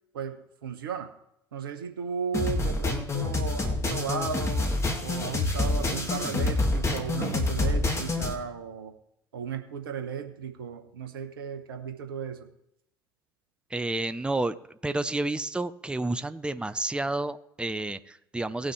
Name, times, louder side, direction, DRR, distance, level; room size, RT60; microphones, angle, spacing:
voice 1, 0.1-1.1 1.5-4.7 5.0-8.9 9.3-12.5, right 7 dB, 75° right, 6 dB, 1.1 m, -35 dB
sound 1, 2.3-8.3, left 2 dB, 25° left, 2.0 m, -27 dB
voice 2, 13.7-14.5 14.8-18.7, right 2 dB, 10° right, 12 dB, 0.6 m, -30 dB
19.0 x 6.3 x 3.2 m, 0.79 s
figure-of-eight pair, 60°, 12 cm